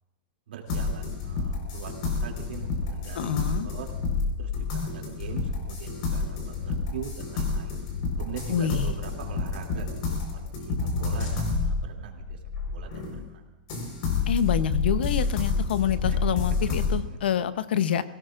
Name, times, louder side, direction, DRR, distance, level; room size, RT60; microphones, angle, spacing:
voice 1, 0.5-3.9 4.4-7.8 8.2-10.2 10.6-12.4 12.7-13.4 16.1-16.2 17.1-17.2, right 8 dB, 85° right, 1 dB, 2.7 m, -41 dB
sound 1, 0.7-13.3 13.7-17.0, left 4 dB, 45° left, 4.4 m, -29 dB
voice 2, 3.2-3.7 8.5-8.9 14.3-18.0, left 9 dB, 85° left, 13 dB, 0.8 m, -27 dB
25.5 x 17.5 x 2.5 m, 1.1 s
supercardioid pair, 175°, 5 cm